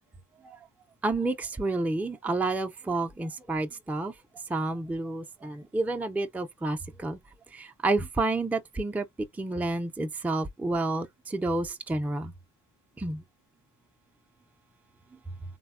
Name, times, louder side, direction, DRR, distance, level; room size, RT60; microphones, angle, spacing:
voice 1, 1.0-4.1 4.5-7.2 7.5-9.1 9.4-12.3 13.0-13.2, right 2 dB, 5° right, 0.4 m, -30 dB
3.4 x 2.1 x 2.3 m
cardioid pair, 90°, 30 cm